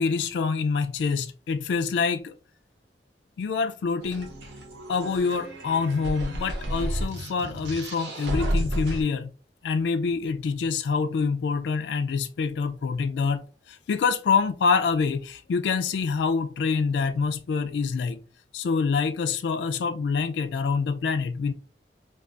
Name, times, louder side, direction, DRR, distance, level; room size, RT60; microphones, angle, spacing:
voice 1, 0.0-2.4 3.4-4.3 4.9-9.3 9.6-18.2 18.5-21.5, left 5 dB, 80° left, 0.3 m, -26 dB
sound 1, 4.0-9.0, equal, 85° right, 0.9 m, -31 dB
2.3 x 2.2 x 3.7 m
head